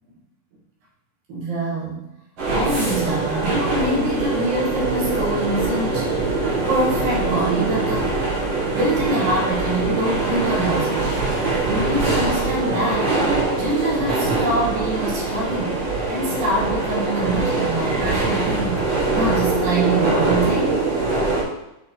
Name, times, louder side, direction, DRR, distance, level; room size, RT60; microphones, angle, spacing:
voice 1, 1.3-2.1 2.5-6.1 6.5-8.1 8.7-11.1 11.7-13.2 13.6-18.8 19.1-20.9, right 1 dB, 80° right, -5 dB, 3.0 m, -25 dB
sound 1, 2.4-21.4, right 3 dB, 50° right, 2.4 m, -23 dB
8.4 x 4.0 x 2.8 m, 0.90 s
omnidirectional pair, 4.0 m